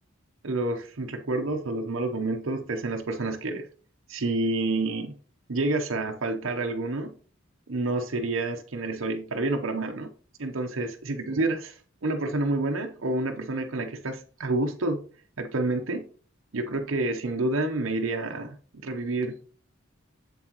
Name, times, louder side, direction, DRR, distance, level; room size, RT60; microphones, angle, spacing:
voice 1, 0.4-3.7 4.1-5.2 5.5-7.2 7.7-10.1 10.4-11.7 12.0-15.0 15.4-16.1 16.5-19.6, right 2 dB, 75° right, 3 dB, 0.8 m, -29 dB
7.5 x 7.5 x 3.0 m, 0.41 s
head